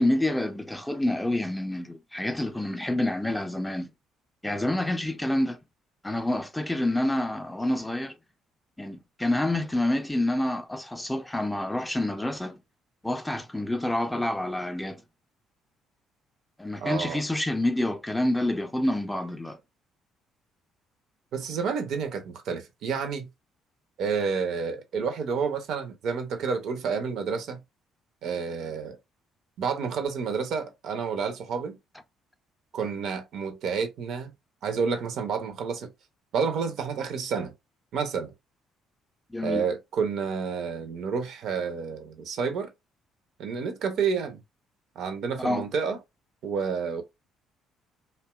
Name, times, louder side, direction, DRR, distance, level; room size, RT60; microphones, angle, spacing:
voice 1, 0.0-3.9 4.4-5.6 6.0-8.2 8.8-12.6 13.0-15.0 16.6-19.6 39.3-39.6 45.4-45.6, left 1 dB, 10° left, 0.5 m, -28 dB
voice 2, 16.8-17.2 21.3-23.3 24.0-27.6 28.2-29.0 29.6-31.8 32.7-34.3 34.6-35.9 36.3-37.5 37.9-38.3 39.4-42.7 43.4-44.4 45.0-46.0 46.4-47.0, right 5 dB, 60° right, 0.5 m, -29 dB
2.7 x 2.1 x 2.2 m
figure-of-eight pair, 50°, 0 cm